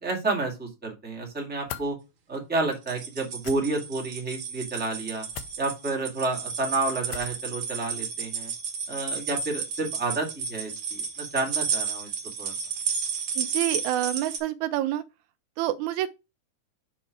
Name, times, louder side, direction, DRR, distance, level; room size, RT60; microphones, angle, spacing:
voice 1, 0.0-1.9 2.3-5.2 5.6-8.5 8.9-12.1 12.4-12.5, right 3 dB, 5° right, 1.6 m, -30 dB
sound 1, 1.7-1.9 3.4-3.6 5.3-5.5 7.1-7.4, left 10 dB, 75° left, 1.9 m, -38 dB
sound 2, 2.7-14.4, right 6 dB, 50° right, 1.9 m, -32 dB
voice 2, 13.4-15.0 15.6-16.1, right 13 dB, 80° right, 1.9 m, -27 dB
6.6 x 4.2 x 4.6 m
omnidirectional pair, 3.4 m